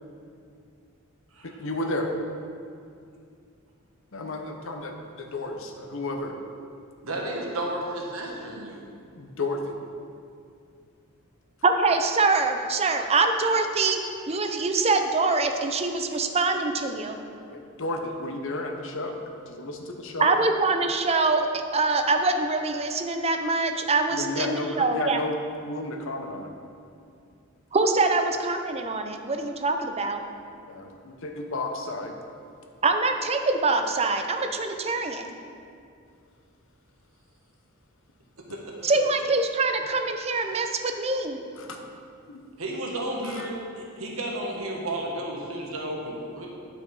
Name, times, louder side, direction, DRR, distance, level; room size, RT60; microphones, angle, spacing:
voice 1, 1.4-2.1 4.1-6.3 9.1-9.7 17.5-19.2 19.5-20.3 24.1-25.3 25.6-26.5 30.7-32.1 41.6-41.8 42.3-42.4 43.2-43.5, left 2 dB, 65° left, 3 dB, 0.9 m, -32 dB
voice 2, 7.0-8.9 38.5-38.8 42.6-46.5, right 1 dB, 75° right, -1 dB, 1.5 m, -32 dB
voice 3, 11.6-14.0 14.3-17.2 20.2-25.2 27.7-30.2 32.8-35.3 38.8-41.4, right 3 dB, 30° right, 6 dB, 0.6 m, -24 dB
10.5 x 5.7 x 4.7 m, 2.4 s
head